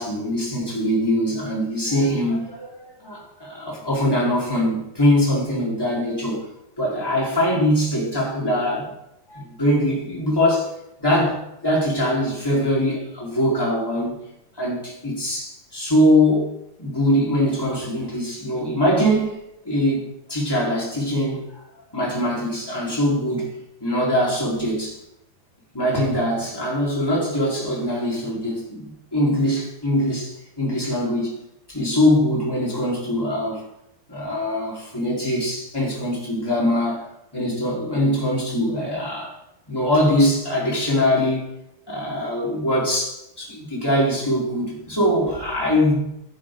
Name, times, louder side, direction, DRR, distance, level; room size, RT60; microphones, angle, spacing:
voice 1, 0.0-6.4 6.8-8.9 9.3-10.7 11.0-14.3 14.6-16.5 16.8-19.4 19.6-21.6 21.9-23.5 23.8-25.0 25.7-31.4 31.7-33.6 34.1-37.1 37.3-39.3 39.7-41.4 41.9-46.1, left 1 dB, 5° left, -5 dB, 4.0 m, -22 dB
14.0 x 11.5 x 3.9 m, 0.85 s
omnidirectional pair, 4.7 m